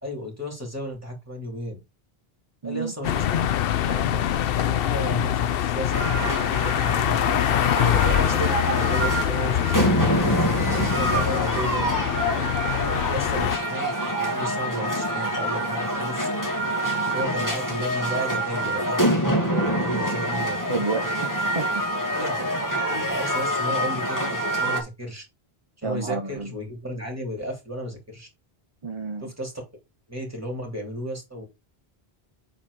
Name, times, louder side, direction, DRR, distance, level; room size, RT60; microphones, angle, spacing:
voice 1, 0.0-1.8 2.6-3.4 3.7-7.4 8.1-11.9 12.7-16.3 17.1-21.2 22.1-25.2 25.8-28.3 29.2-29.6 30.1-31.5, equal, 15° right, 3.2 m, -34 dB
sound 1, 3.0-13.6, left 11 dB, 70° left, 0.7 m, -24 dB
sound 2, 5.9-24.8, right 1 dB, 15° left, 2.1 m, -26 dB
voice 2, 20.7-21.7 25.8-26.5 28.8-29.3, right 3 dB, 30° right, 0.9 m, -29 dB
7.9 x 4.2 x 4.9 m
omnidirectional pair, 1.1 m